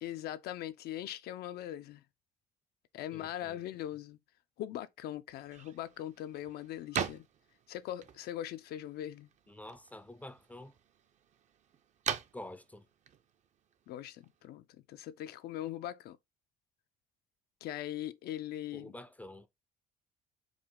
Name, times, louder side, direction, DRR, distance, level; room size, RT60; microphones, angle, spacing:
voice 1, 0.0-2.0 2.9-4.2 4.6-7.3 7.7-9.3 13.9-16.2 17.6-18.9, left 12 dB, 70° left, 0.4 m, -41 dB
voice 2, 3.1-3.6 9.5-10.7 12.3-12.8 18.7-19.5, left 1 dB, 10° left, 0.4 m, -48 dB
sound 1, 5.3-14.5, right 8 dB, 45° right, 0.5 m, -43 dB
4.8 x 2.3 x 3.6 m
cardioid pair, 110°, 17 cm